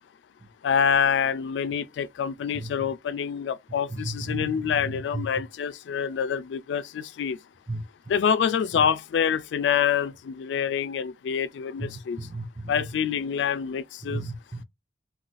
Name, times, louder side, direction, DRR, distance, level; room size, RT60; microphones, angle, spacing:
voice 1, 0.6-7.4 8.1-12.3 12.7-14.2, left 7 dB, 70° left, 0.3 m, -26 dB
voice 2, 2.5-2.9 3.9-5.3 7.7-7.8 11.8-12.9 14.1-14.6, right 2 dB, 20° right, 0.3 m, -35 dB
2.5 x 2.3 x 3.8 m
head